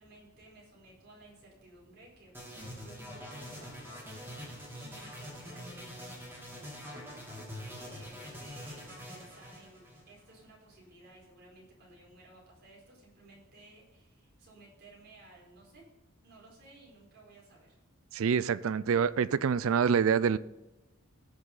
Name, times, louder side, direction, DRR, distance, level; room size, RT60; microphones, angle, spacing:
voice 1, 0.0-4.4 4.7-7.3 7.7-15.8 16.2-17.8, right 2 dB, 45° right, 4.6 m, -57 dB
sound 1, 2.3-10.4, equal, 10° right, 3.0 m, -45 dB
voice 2, 18.1-20.4, right 6 dB, 65° right, 0.4 m, -26 dB
18.0 x 6.5 x 4.0 m
head